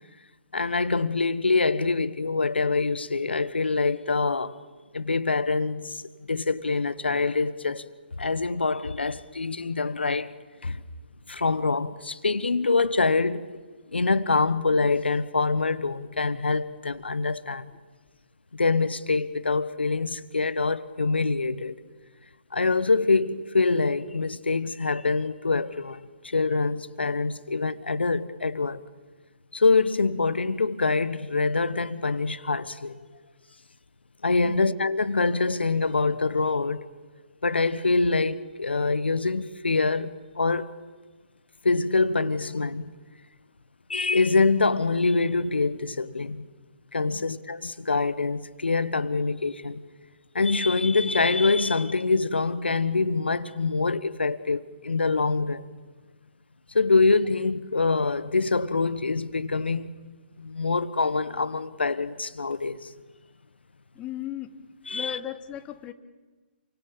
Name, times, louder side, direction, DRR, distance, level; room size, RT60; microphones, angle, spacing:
voice 1, 0.5-4.6 4.9-6.0 6.3-7.8 8.2-10.3 10.6-10.8 11.3-13.5 13.9-17.7 18.5-21.8 22.5-28.8 29.5-33.0 34.2-36.8 37.4-40.7 41.6-42.8 43.9-46.4 46.9-49.8 50.3-55.7 56.7-59.9 60.4-62.9 64.9-65.2, left 3 dB, 80° left, 1.2 m, -25 dB
voice 2, 63.9-64.6 64.9-65.9, left 11 dB, 20° left, 1.3 m, -36 dB
28.5 x 24.5 x 7.4 m
figure-of-eight pair, 130°, 6 cm